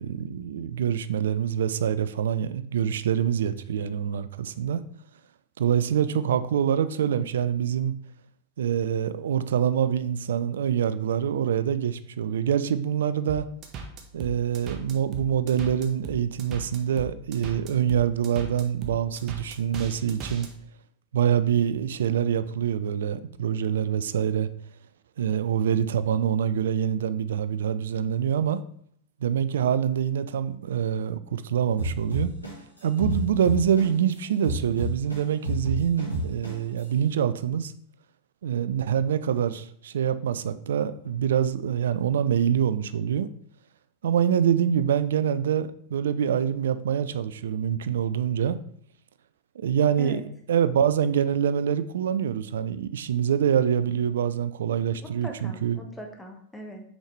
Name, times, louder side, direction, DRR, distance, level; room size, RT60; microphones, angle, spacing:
voice 1, 0.0-4.8 5.6-7.9 8.6-13.5 14.1-20.5 21.1-24.5 25.2-28.6 29.2-32.3 32.8-37.7 38.4-43.3 44.0-48.6 49.6-50.2 50.5-55.8, right 8 dB, 60° right, 0.4 m, -25 dB
sound 1, 13.3-20.5, right 4 dB, 35° right, 0.9 m, -38 dB
sound 2, 31.8-34.1 34.4-36.8, equal, 90° left, 1.9 m, -30 dB
voice 2, 55.0-56.8, equal, 5° left, 1.2 m, -40 dB
6.2 x 5.1 x 3.2 m
figure-of-eight pair, 90°, 0 cm